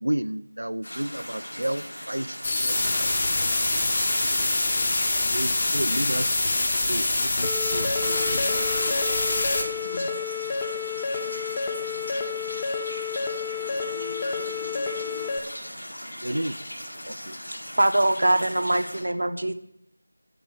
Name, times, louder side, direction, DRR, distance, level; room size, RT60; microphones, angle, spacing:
voice 1, 0.0-3.1 5.3-6.3 6.9-7.1 7.3-8.4 16.2-16.6 17.1-17.3, right 1 dB, 85° right, 13 dB, 0.4 m, -31 dB
sound 1, 0.8-19.0, equal, 85° left, 5.6 m, -38 dB
sound 2, 2.4-9.6, left 2 dB, 30° left, 1.2 m, -25 dB
voice 2, 4.3-5.1 9.5-10.0 13.6-15.3, left 2 dB, 55° left, -3 dB, 2.2 m, -42 dB
sound 3, 7.4-15.4, left 6 dB, 15° left, 0.6 m, -31 dB
voice 3, 17.8-19.5, right 1 dB, 65° right, 8 dB, 0.9 m, -22 dB
9.1 x 6.2 x 8.0 m, 0.73 s
figure-of-eight pair, 175°, 0 cm